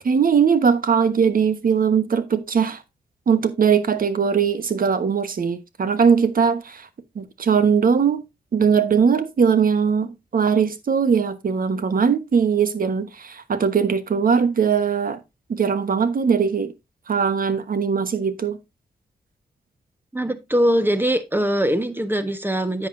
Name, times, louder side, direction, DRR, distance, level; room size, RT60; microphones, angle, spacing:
voice 1, 0.0-2.8 3.3-6.8 7.1-8.2 8.5-15.2 15.5-16.7 17.1-18.6, right 6 dB, 55° right, 1.2 m, -20 dB
voice 2, 20.1-22.9, equal, 10° right, 1.3 m, -22 dB
10.5 x 7.6 x 2.6 m
supercardioid pair, 50°, 17 cm